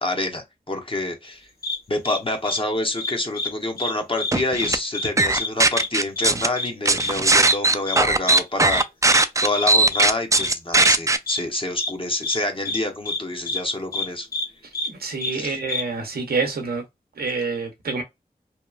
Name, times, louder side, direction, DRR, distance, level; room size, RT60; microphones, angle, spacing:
voice 1, 0.0-1.5 1.9-8.8 9.4-14.3 15.3-15.6, left 2 dB, 35° left, 0.8 m, -27 dB
sound 1, 1.6-1.8 2.0-2.2 2.4-2.6 3.0-3.5 3.8-3.9 4.2-4.7 4.9-5.1 5.3-5.5 5.7-5.9 6.2-6.3 6.6-6.7 7.0-7.1 7.4-7.5 7.9-8.0 8.3-8.4 8.7-8.8 9.1-9.2 9.5-9.6 9.9-10.0 10.3-10.5 10.7-10.9 11.3-11.4 11.8-11.9 12.2-12.4 12.6-12.8 13.0-13.2 13.5-13.6 13.9-14.0 14.3-14.4 14.7-14.9 15.2-15.3 15.7-15.8, left 2 dB, 80° left, 1.0 m, -27 dB
sound 2, 4.3-4.8 5.2-6.5 6.9-11.2, right 2 dB, 20° right, 0.3 m, -18 dB
voice 2, 14.8-16.8 17.2-18.0, right 4 dB, 90° right, 0.6 m, -27 dB
2.8 x 2.2 x 2.3 m
cardioid pair, 45°, 16 cm